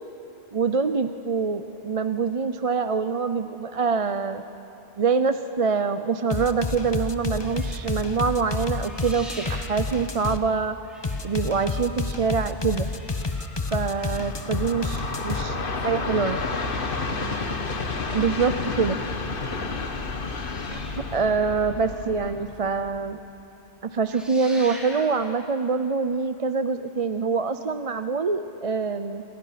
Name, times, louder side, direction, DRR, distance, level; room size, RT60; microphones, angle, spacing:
voice 1, 0.5-4.4 5.0-10.8 11.2-12.9 13.7-15.5 15.8-16.4 18.1-19.0 20.7-20.8 21.1-23.2 23.8-29.2, right 5 dB, 40° right, 10 dB, 0.7 m, -25 dB
sound 1, 6.3-10.4 11.0-15.4, left 3 dB, 25° left, 0.9 m, -30 dB
sound 2, 7.3-10.5 10.8-15.0 15.5-22.6 22.9-23.1 23.4-23.7 23.9-25.3 26.1-26.2, equal, ahead, 5.4 m, -46 dB
Train, 14.0-23.2, left 3 dB, 60° left, 1.4 m, -31 dB
voice 2, 15.4-17.5 21.6-22.8, left 1 dB, 55° right, -4 dB, 8.3 m, -45 dB
29.5 x 28.5 x 5.8 m, 2.9 s
omnidirectional pair, 1.0 m